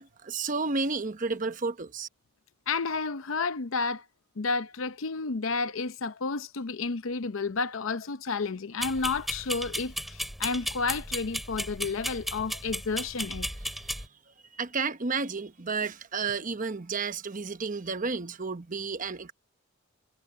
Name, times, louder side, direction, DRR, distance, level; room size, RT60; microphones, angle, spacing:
voice 1, 0.0-2.1 13.7-14.1 14.5-19.3, right 4 dB, 40° right, 1.0 m, -32 dB
voice 2, 2.7-4.0 4.4-13.5, left 4 dB, 80° left, 0.7 m, -31 dB
sound 1, 8.8-14.1, equal, ahead, 6.0 m, -35 dB
head